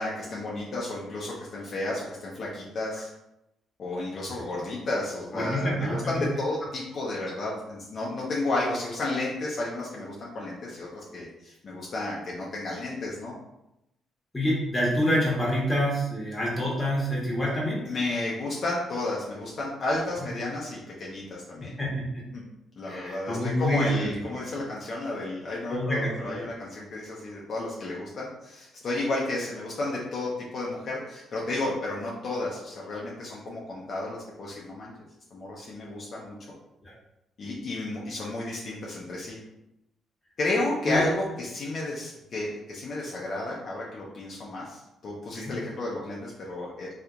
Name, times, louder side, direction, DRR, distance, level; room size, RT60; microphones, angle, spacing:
voice 1, 0.0-3.1 3.8-13.3 17.9-21.7 22.3-22.4 22.8-34.9 35.3-36.4 37.4-39.4 40.4-46.9, left 2 dB, 50° left, -5 dB, 0.7 m, -32 dB
voice 2, 5.3-6.3 14.3-17.9 21.8-22.1 22.8-24.2 25.7-26.3 36.8-36.9 40.8-41.0 45.3-45.5, equal, 15° left, -4 dB, 1.3 m, -27 dB
3.2 x 2.8 x 2.5 m, 0.87 s
cardioid pair, 90°, 0 cm